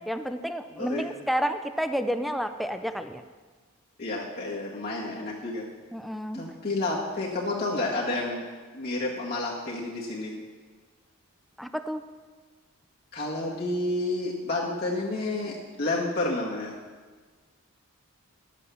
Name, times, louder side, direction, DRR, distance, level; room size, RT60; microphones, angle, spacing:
voice 1, 0.1-3.2 5.9-6.4 11.6-12.0, equal, ahead, 8 dB, 0.5 m, -30 dB
voice 2, 0.7-1.2 4.0-5.7 6.3-8.4 8.7-10.3 13.1-16.7, left 2 dB, 45° left, -5 dB, 1.9 m, -30 dB
11.5 x 8.4 x 6.9 m, 1.4 s
head